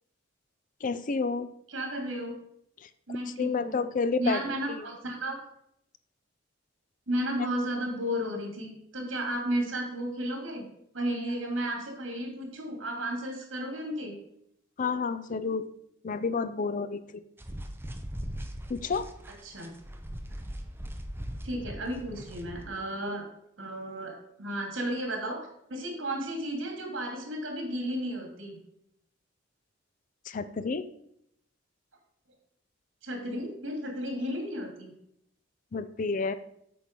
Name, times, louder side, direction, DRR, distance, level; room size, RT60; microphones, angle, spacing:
voice 1, 0.8-1.5 3.4-4.4 4.7-4.9 14.8-15.7 16.0-17.2 18.7-19.1 30.3-30.9 35.7-36.3, left 4 dB, 40° left, 13 dB, 0.4 m, -30 dB
voice 2, 1.7-2.3 3.1-3.8 4.2-5.4 7.1-10.7 10.9-14.1 19.4-19.7 21.4-23.2 23.6-28.6 33.0-34.9, right 1 dB, 80° right, 1 dB, 2.6 m, -33 dB
sound 1, 17.4-22.7, equal, 10° right, 0.7 m, -40 dB
8.5 x 4.7 x 5.3 m, 0.73 s
head